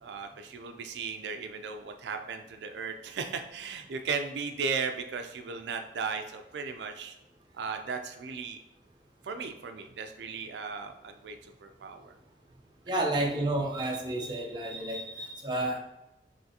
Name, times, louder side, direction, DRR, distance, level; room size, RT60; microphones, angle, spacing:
voice 1, 0.0-7.2 7.5-8.6 9.2-12.2 12.9-13.2, right 5 dB, 80° right, 6 dB, 0.4 m, -36 dB
voice 2, 12.9-15.8, right 1 dB, 25° right, 0 dB, 0.6 m, -31 dB
5.7 x 3.1 x 2.8 m, 0.91 s
head